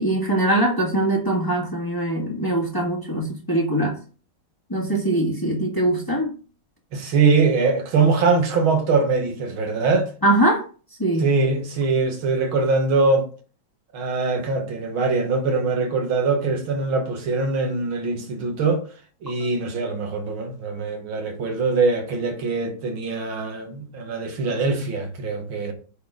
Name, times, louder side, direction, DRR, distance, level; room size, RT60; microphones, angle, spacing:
voice 1, 0.0-3.9 4.7-6.3 10.2-10.6 11.0-11.3, right 1 dB, 10° left, 1.6 m, -22 dB
voice 2, 6.9-10.1 11.2-13.3 13.9-18.8 19.2-25.7, right 4 dB, 85° right, 2.4 m, -22 dB
9.0 x 4.2 x 5.0 m
omnidirectional pair, 2.2 m